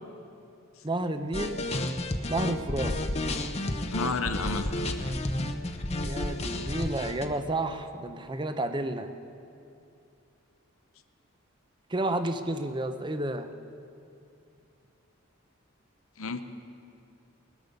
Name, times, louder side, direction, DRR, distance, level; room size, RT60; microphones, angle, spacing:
voice 1, 0.8-1.6 2.3-3.0 6.0-9.1 11.9-13.5, right 1 dB, 20° right, 8 dB, 0.7 m, -31 dB
sound 1, 1.3-7.3, left 1 dB, 30° left, 0.8 m, -31 dB
voice 2, 3.9-4.8 16.2-16.4, left 4 dB, 75° left, 9 dB, 0.8 m, -31 dB
19.0 x 13.5 x 5.3 m, 2.6 s
head